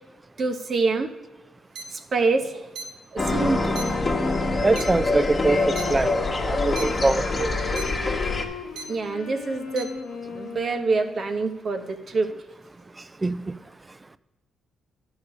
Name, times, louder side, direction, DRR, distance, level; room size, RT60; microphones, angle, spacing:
voice 1, 0.4-1.1 1.9-2.7 3.1-3.8 8.9-9.9 10.3-12.3, right 3 dB, 45° right, 6 dB, 0.8 m, -26 dB
sound 1, 1.7-1.8 2.7-2.8 3.8-3.9 4.8-4.9 5.8-5.9 6.8-6.9 7.8-7.9 8.8-8.9 9.8-9.9, right 4 dB, 75° right, 1.0 m, -34 dB
sound 2, 3.2-8.4, left 2 dB, 30° left, 1.1 m, -25 dB
Wind instrument woodwind instrument, 3.7-11.4, left 6 dB, 75° left, 1.0 m, -37 dB
voice 2, 4.6-5.6 5.9-6.1 6.5-7.5 13.2-13.4, right 2 dB, 20° right, 16 dB, 0.3 m, -22 dB
10.5 x 4.8 x 6.9 m, 1.1 s
cardioid pair, 90°, 0 cm